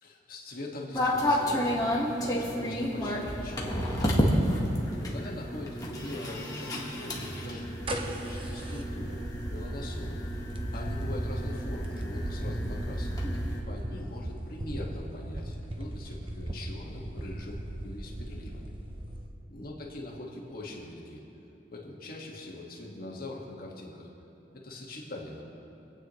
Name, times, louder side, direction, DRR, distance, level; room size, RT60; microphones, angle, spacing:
voice 1, 0.0-4.4 5.0-9.2 9.5-10.2 10.7-13.2 13.5-18.7 19.5-21.2 21.7-24.1 24.5-25.4, left 1 dB, 55° left, -2 dB, 1.9 m, -42 dB
sound 1, 0.9-13.6, equal, 20° left, 1.6 m, -31 dB
sound 2, 7.6-19.3, right 1 dB, 30° right, 0.9 m, -39 dB
26.5 x 9.2 x 3.2 m, 3.0 s
head